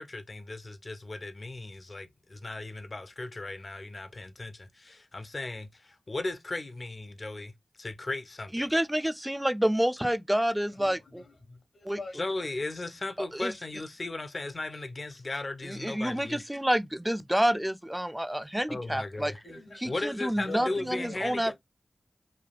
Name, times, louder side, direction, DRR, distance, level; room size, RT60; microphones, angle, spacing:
voice 1, 0.0-7.5 7.8-8.7 12.1-16.5 18.7-19.4 19.8-21.5, left 2 dB, 50° left, 0.5 m, -36 dB
voice 2, 8.5-11.2 11.9-12.0 13.2-13.5 15.6-19.3 19.8-21.5, equal, 10° right, 0.3 m, -28 dB
voice 3, 10.7-12.2 19.4-20.0 20.4-21.5, left 3 dB, 75° left, 1.1 m, -44 dB
3.2 x 2.3 x 2.4 m
cardioid pair, 40°, 0 cm